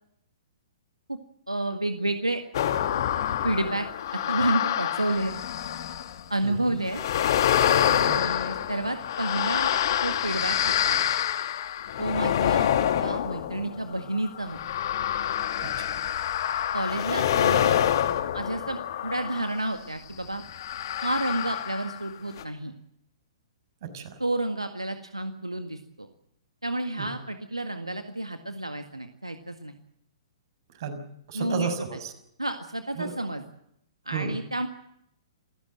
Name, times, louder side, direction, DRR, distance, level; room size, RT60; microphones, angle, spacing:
voice 1, 1.5-2.4 3.4-3.9 4.1-5.3 6.3-7.0 7.8-9.7 10.0-11.0 12.0-12.7 13.0-14.6 16.7-17.7 18.3-20.4 21.0-22.7 24.2-26.1 26.6-29.8 31.3-31.7 32.4-33.4 34.1-34.7, right 1 dB, 90° right, 7 dB, 1.8 m, -30 dB
sound 1, 2.5-6.2 6.9-19.7 20.5-22.1 22.4-22.5, left 10 dB, 50° left, 2.0 m, -27 dB
voice 2, 6.4-6.8 8.0-8.3 15.6-16.0 23.8-24.2 27.0-27.1 30.8-31.0 31.3-32.1 33.0-33.1 34.1-34.3, right 6 dB, 50° right, 8 dB, 5.8 m, -33 dB
28.5 x 15.5 x 7.7 m, 0.75 s
figure-of-eight pair, 120°, 3 cm